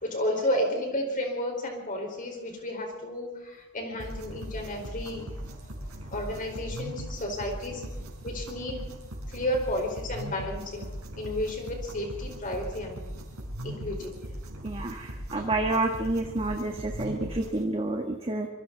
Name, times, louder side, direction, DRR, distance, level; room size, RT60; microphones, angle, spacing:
voice 1, 0.0-5.2 6.1-7.8 8.2-8.8 9.3-13.0 13.6-14.1 15.4-15.5, left 1 dB, 40° left, 2 dB, 4.7 m, -32 dB
sound 1, 4.0-17.6, equal, 70° right, 5.1 m, -39 dB
voice 2, 14.6-18.5, right 2 dB, 25° right, 3 dB, 1.7 m, -29 dB
26.0 x 25.0 x 4.1 m, 1.1 s
head